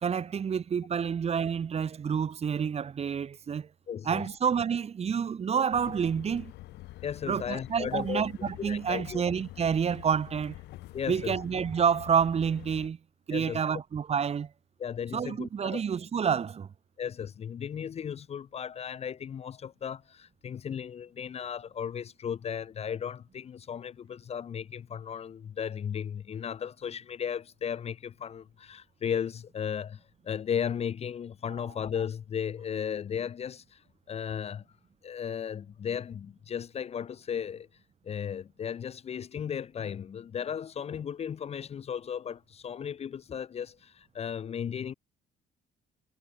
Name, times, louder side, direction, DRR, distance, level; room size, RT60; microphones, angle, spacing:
voice 1, 0.0-3.7 4.1-6.5 7.3-10.6 11.1-13.0 13.3-14.5 15.1-16.7, right 7 dB, 40° right, 2.1 m, -28 dB
voice 2, 3.9-4.3 7.0-8.3 8.6-9.2 10.9-11.4 13.3-13.6 14.8-15.8 17.0-33.8 34.1-34.6 35.0-37.7 38.0-44.9, left 8 dB, 40° left, 0.8 m, -35 dB
sound 1, 5.7-12.9, left 17 dB, 80° left, 3.8 m, -46 dB
cardioid pair, 110°, 17 cm